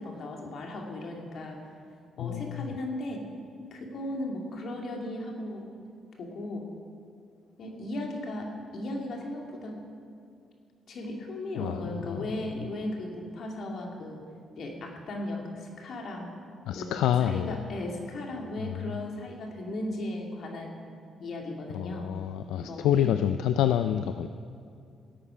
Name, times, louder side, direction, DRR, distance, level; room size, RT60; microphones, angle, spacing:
voice 1, 0.0-1.6 2.2-3.3 3.7-5.7 6.2-6.7 7.6-9.8 10.9-14.2 14.6-16.3 16.7-20.7 21.2-22.1 22.5-23.1, left 1 dB, 65° left, 1 dB, 2.3 m, -36 dB
voice 2, 2.2-2.7 11.6-12.2 16.7-17.6 18.6-18.9 21.7-24.3, left 10 dB, 85° left, 10 dB, 0.4 m, -28 dB
16.5 x 8.5 x 5.7 m, 2.4 s
supercardioid pair, 70°, 0 cm